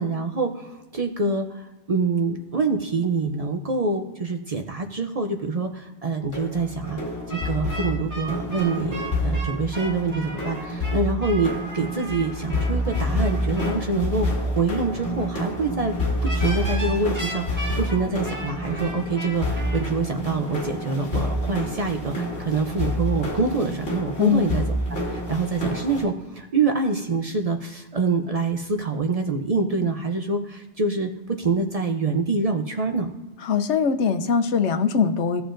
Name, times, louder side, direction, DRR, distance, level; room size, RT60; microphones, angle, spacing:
voice 1, 0.0-7.0 7.3-16.0 16.2-24.6 24.9-33.1, right 3 dB, 40° right, 5 dB, 0.6 m, -26 dB
sound 1, 6.3-26.0, left 1 dB, 55° left, 2.2 m, -28 dB
sound 2, 7.3-13.8 16.2-19.9, right 1 dB, 15° right, 1.9 m, -36 dB
voice 2, 24.2-24.5 33.4-35.4, left 6 dB, 85° left, 8 dB, 1.0 m, -21 dB
15.5 x 6.9 x 2.5 m, 1.1 s
omnidirectional pair, 1.2 m